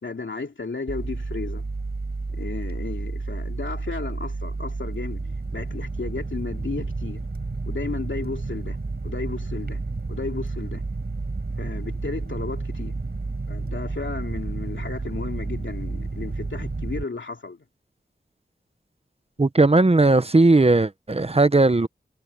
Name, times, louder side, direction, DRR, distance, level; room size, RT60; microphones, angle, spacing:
voice 1, 0.0-1.6 2.3-5.3 5.5-7.2 7.6-8.8 9.0-9.8 10.1-10.8 11.6-13.0 13.5-17.6, left 4 dB, 75° left, 2.8 m, -34 dB
sound 1, 0.9-17.0, right 3 dB, 55° right, 5.2 m, -31 dB
voice 2, 19.4-21.9, right 2 dB, 30° right, 0.8 m, -17 dB
wide cardioid pair, 75°, 19 cm